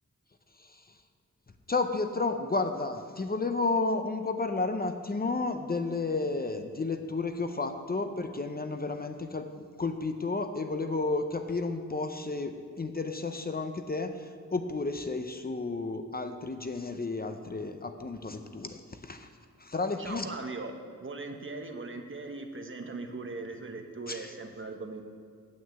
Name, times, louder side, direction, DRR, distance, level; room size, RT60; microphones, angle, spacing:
voice 1, 1.7-19.3 19.6-20.3 24.1-24.3, left 3 dB, 30° left, 7 dB, 0.6 m, -32 dB
voice 2, 20.0-20.7 21.0-25.0, right 3 dB, 40° right, 4 dB, 1.0 m, -39 dB
8.7 x 6.4 x 8.0 m, 2.1 s
wide cardioid pair, 125°, 30 cm